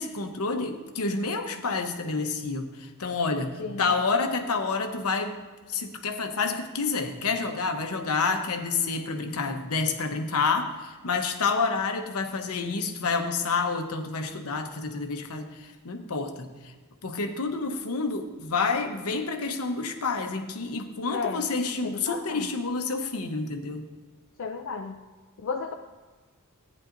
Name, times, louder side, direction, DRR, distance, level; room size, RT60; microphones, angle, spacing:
voice 1, 0.0-5.4 5.7-16.7 17.0-23.9, left 4 dB, 85° left, 5 dB, 0.9 m, -29 dB
voice 2, 3.6-3.9 21.1-21.5 21.8-22.5 24.4-25.0 25.4-25.7, left 5 dB, 60° left, 5 dB, 0.4 m, -33 dB
14.0 x 9.5 x 2.6 m, 1.3 s
head